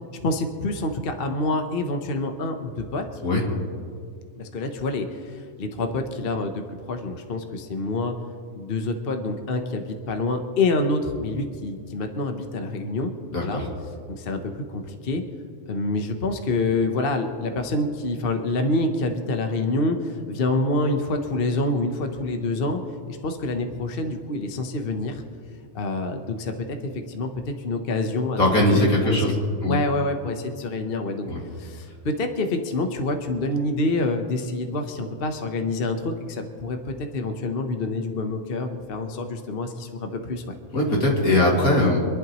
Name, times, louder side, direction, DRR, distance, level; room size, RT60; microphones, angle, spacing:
voice 1, 0.2-3.0 4.4-6.6 6.9-8.1 8.5-13.1 13.4-13.6 14.1-15.2 15.7-22.8 23.1-25.2 25.7-26.5 26.8-27.3 27.6-29.2 29.6-31.3 31.6-40.4, left 2 dB, 45° left, 5 dB, 1.1 m, -27 dB
voice 2, 13.3-13.7 28.4-29.4 29.6-29.8 31.2-31.4 40.7-42.1, left 1 dB, 80° left, -2 dB, 2.9 m, -20 dB
26.0 x 11.5 x 3.0 m, 2.1 s
omnidirectional pair, 1.5 m